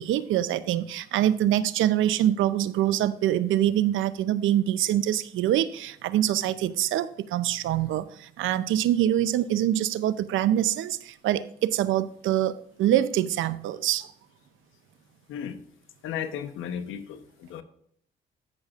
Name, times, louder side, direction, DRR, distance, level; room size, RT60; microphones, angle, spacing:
voice 1, 0.0-14.1, right 12 dB, 80° right, 15 dB, 0.6 m, -25 dB
voice 2, 15.3-15.6 16.0-17.6, left 8 dB, 85° left, 9 dB, 1.0 m, -34 dB
13.5 x 6.5 x 2.4 m, 0.66 s
cardioid pair, 90°, 20 cm